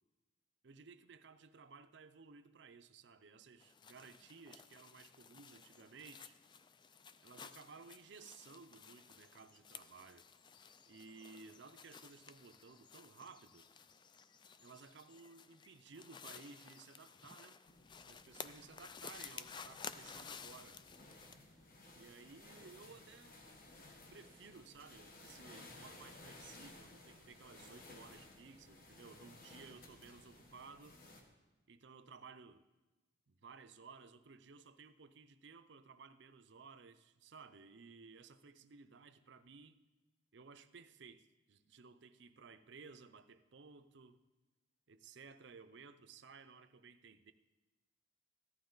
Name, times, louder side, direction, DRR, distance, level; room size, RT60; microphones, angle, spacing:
voice 1, 0.6-6.4 7.2-10.3 10.9-13.7 14.6-17.6 18.1-20.8 22.0-23.4 24.1-31.0 31.7-32.6 33.3-39.8 40.3-44.2 44.9-47.3, right 5 dB, 60° right, 0.6 m, -57 dB
sound 1, 3.6-21.3, left 6 dB, 25° left, 0.3 m, -54 dB
sound 2, 17.7-31.2, left 2 dB, 45° left, 1.5 m, -58 dB
14.0 x 11.5 x 3.9 m
head